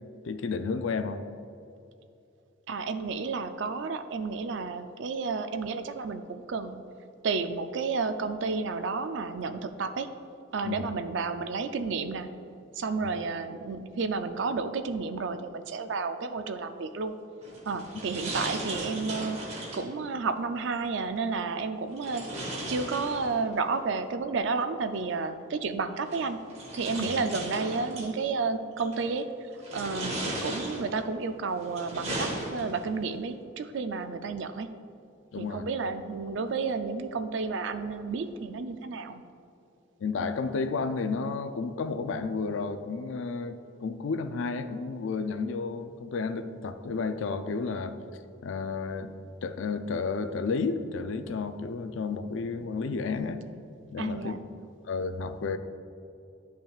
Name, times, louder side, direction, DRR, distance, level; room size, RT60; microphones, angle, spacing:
voice 1, 0.2-1.3 10.6-10.9 13.0-13.1 27.0-27.1 35.3-35.6 40.0-47.9 48.4-49.1 49.4-53.5 53.9-54.4 54.9-55.6, left 4 dB, 70° left, 10 dB, 0.4 m, -32 dB
voice 2, 2.7-6.8 7.2-10.1 10.5-12.3 12.8-17.2 17.7-19.4 19.7-22.3 22.7-26.4 26.7-29.3 29.7-34.7 35.4-39.2 54.0-54.4, right 4 dB, 65° right, 9 dB, 0.4 m, -31 dB
sound 1, 17.4-19.9 22.0-23.6 25.0-25.1 26.1-28.1 28.8-29.2 29.6-31.1 31.6-33.0, right 1 dB, 30° right, 1.0 m, -36 dB
10.5 x 5.6 x 2.4 m, 2.6 s
head